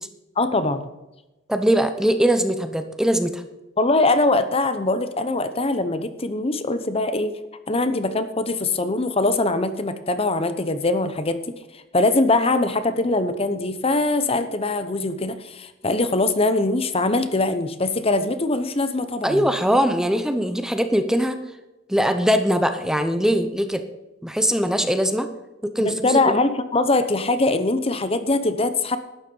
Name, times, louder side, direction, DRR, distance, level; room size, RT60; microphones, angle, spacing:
voice 1, 0.4-0.8 3.8-7.3 7.7-11.4 11.7-19.5 25.8-29.0, left 2 dB, 30° left, 11 dB, 0.9 m, -22 dB
voice 2, 1.5-3.4 19.2-21.4 21.9-23.8 24.2-25.3 25.6-26.2, equal, 5° right, 8 dB, 0.8 m, -21 dB
12.0 x 9.8 x 5.5 m, 1.0 s
head